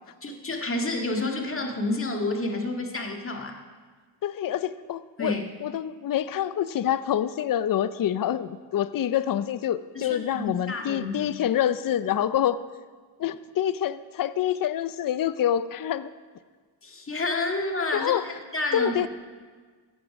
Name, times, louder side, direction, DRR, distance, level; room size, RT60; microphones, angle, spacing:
voice 1, 0.2-3.6 5.2-5.4 9.9-11.3 16.8-18.1 18.5-19.1, left 2 dB, 30° left, 2 dB, 1.9 m, -29 dB
voice 2, 4.2-5.3 5.6-12.6 13.2-16.1 17.9-18.2 18.7-19.1, left 10 dB, 50° left, 15 dB, 0.6 m, -26 dB
16.0 x 9.3 x 5.9 m, 1.5 s
wide cardioid pair, 115°, 43 cm